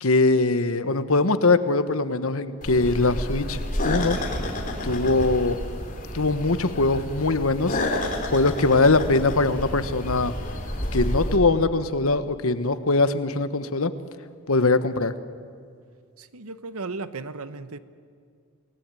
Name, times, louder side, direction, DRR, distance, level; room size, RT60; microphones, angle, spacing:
voice 1, 0.0-4.2 4.8-5.6 6.1-7.8 8.3-10.3 10.9-13.9 14.5-15.1, left 3 dB, 75° left, 1.2 m, -22 dB
sound 1, 2.6-11.4, left 1 dB, 35° left, 3.6 m, -30 dB
voice 2, 16.2-17.8, right 3 dB, 80° right, 1.0 m, -35 dB
28.5 x 18.5 x 9.1 m
head